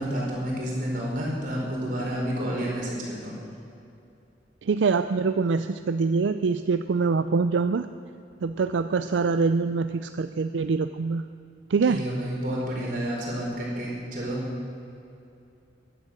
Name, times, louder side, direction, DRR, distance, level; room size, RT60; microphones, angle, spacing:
voice 1, 0.0-3.4 11.8-14.4, equal, 50° right, -3 dB, 4.6 m, -30 dB
voice 2, 4.6-7.9 8.4-11.2 11.7-12.0, right 4 dB, 80° right, 10 dB, 0.4 m, -24 dB
15.5 x 11.0 x 6.5 m, 2.6 s
head